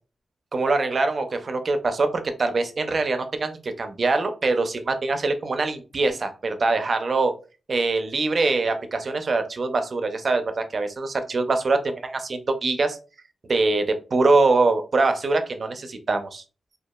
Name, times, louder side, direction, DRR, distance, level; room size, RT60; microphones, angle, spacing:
voice 1, 0.5-7.3 7.7-13.0 13.5-16.4, right 3 dB, 50° right, 7 dB, 0.4 m, -23 dB
2.8 x 2.3 x 2.2 m, 0.34 s
wide cardioid pair, 125°, 0 cm